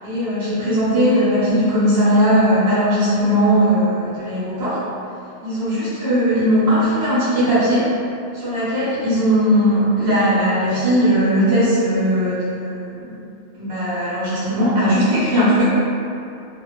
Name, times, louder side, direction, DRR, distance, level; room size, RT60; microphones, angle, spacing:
voice 1, 0.0-4.8 5.4-7.9 8.3-13.2 13.6-15.7, equal, 60° right, -11 dB, 1.2 m, -18 dB
2.7 x 2.0 x 2.2 m, 2.6 s
omnidirectional pair, 1.3 m